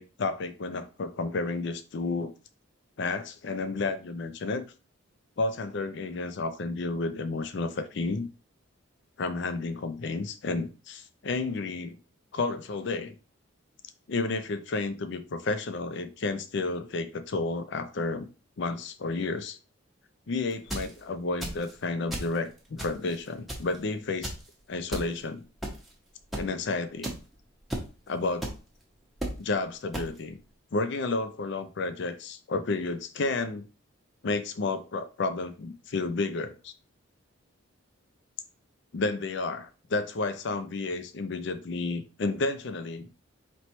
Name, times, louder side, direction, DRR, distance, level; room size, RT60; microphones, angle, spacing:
voice 1, 0.0-2.3 3.0-4.6 5.4-8.3 9.2-12.0 12.3-13.2 14.1-18.3 18.6-19.6 20.3-24.3 24.7-25.5 26.3-27.1 28.1-28.5 29.4-30.4 30.7-33.6 34.2-36.7 38.9-43.1, left 3 dB, 55° left, 0.4 m, -31 dB
sound 1, 20.5-20.9 21.4-21.7 22.1-22.4 22.8-23.2 23.5-23.8 24.2-24.4 24.9-25.0 25.6-25.9 26.3-26.4 27.0-27.1 27.7-27.9 28.4-28.5 29.2-29.3 29.9-30.1, right 1 dB, ahead, 0.7 m, -33 dB
4.4 x 3.0 x 3.0 m
head